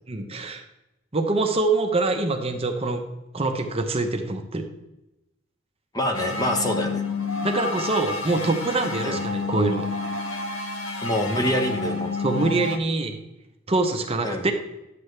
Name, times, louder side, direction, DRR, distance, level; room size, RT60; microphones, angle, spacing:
voice 1, 0.1-0.6 1.1-3.0 3.3-4.7 6.8-6.9 7.4-9.9 12.2-13.2 13.7-14.5, right 3 dB, 30° right, 4 dB, 0.8 m, -24 dB
voice 2, 5.9-7.0 9.0-9.2 11.0-12.1 14.2-14.5, left 1 dB, 20° left, 4 dB, 1.0 m, -25 dB
sound 1, 6.1-12.8, left 3 dB, 85° left, 1.1 m, -29 dB
11.5 x 7.7 x 3.3 m, 0.95 s
head